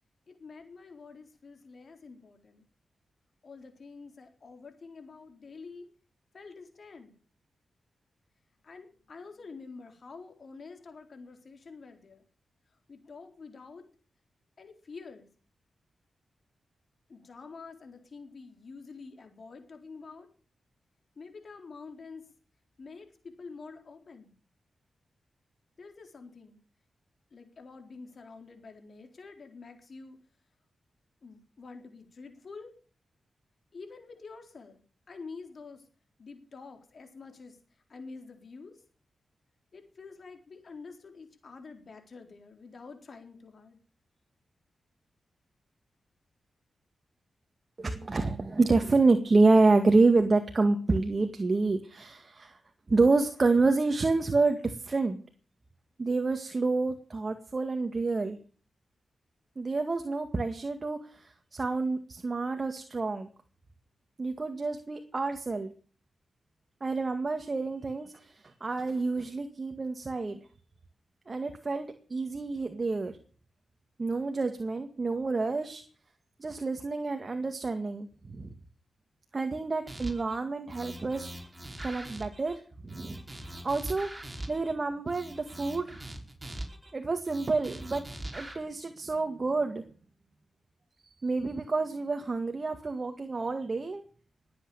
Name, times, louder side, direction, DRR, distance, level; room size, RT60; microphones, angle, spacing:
voice 1, 0.3-2.6 3.4-5.9 6.3-7.2 8.6-12.2 12.7-13.9 14.6-15.3 17.1-20.3 21.2-22.3 22.8-24.3 25.8-26.6 27.3-30.2 31.2-32.7 33.7-34.8 35.1-35.9 36.2-37.6 37.9-38.8 39.7-43.8, left 4 dB, 60° left, 5 dB, 4.0 m, -47 dB
voice 2, 47.8-52.6 52.9-55.2 56.0-58.4 59.6-63.3 64.2-65.7 66.8-70.4 71.3-73.1 74.0-75.8 76.4-78.5 79.3-81.3 81.8-83.2 83.6-84.1 84.5-86.0 86.9-88.0 88.3-89.8 91.0-94.0, right 3 dB, 45° right, 6 dB, 2.0 m, -28 dB
sound 1, 79.9-80.4 80.7-82.6 82.9-84.7 85.1-86.9 87.2-88.5, right 1 dB, 25° right, 5.0 m, -42 dB
20.0 x 8.6 x 7.1 m, 0.42 s
cardioid pair, 50°, 0 cm